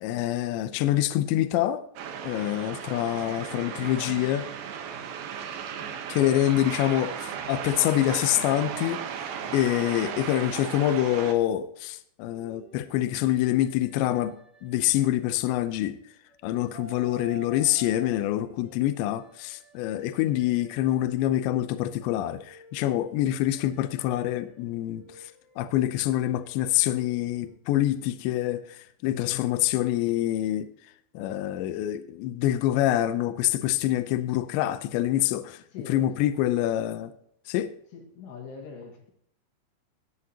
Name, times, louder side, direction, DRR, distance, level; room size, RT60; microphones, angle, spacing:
voice 1, 0.0-1.8 2.2-4.5 6.1-9.0 9.5-14.4 14.6-16.0 16.4-25.3 25.6-30.7 31.1-35.6 35.9-37.1 37.5-37.7, left 13 dB, 80° left, 2.7 m, -26 dB
sound 1, 2.0-11.3, right 8 dB, 80° right, 2.1 m, -36 dB
sound 2, 12.3-15.9 16.3-21.5 21.9-27.5, right 3 dB, 30° right, 1.0 m, -51 dB
voice 2, 29.0-29.5 35.7-36.1 37.9-39.1, left 6 dB, 65° left, 3.7 m, -42 dB
19.5 x 8.3 x 2.8 m
omnidirectional pair, 5.8 m